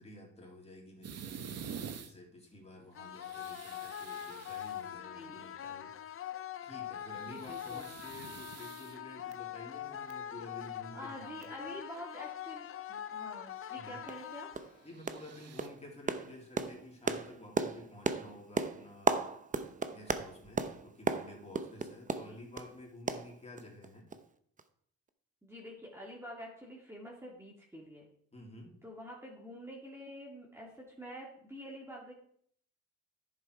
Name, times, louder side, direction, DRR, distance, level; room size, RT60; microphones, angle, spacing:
voice 1, 0.0-6.3 6.6-11.6 13.7-14.0 14.8-19.2 19.9-24.1 28.3-28.8, left 1 dB, 20° left, -2 dB, 3.5 m, -51 dB
sound 1, 1.0-2.1 3.0-5.0 6.9-9.3 9.9-10.1 11.1-11.2 11.4-11.5 14.8-15.7, right 7 dB, 55° right, 1.1 m, -47 dB
sound 2, 2.9-14.9, left 10 dB, 45° left, 0.7 m, -43 dB
voice 2, 5.1-5.4 7.3-7.9 10.9-14.5 22.0-22.4 25.4-28.0 28.8-32.1, equal, 10° right, -3 dB, 2.3 m, -47 dB
sound 3, 13.6-13.7 14.1-14.2 14.5-14.8 15.1-15.3 15.6-22.7 23.1-23.9 24.1-24.2 24.6-24.7, right 4 dB, 25° right, 0.8 m, -35 dB
10.0 x 7.5 x 4.8 m, 0.64 s
cardioid pair, 90°, 30 cm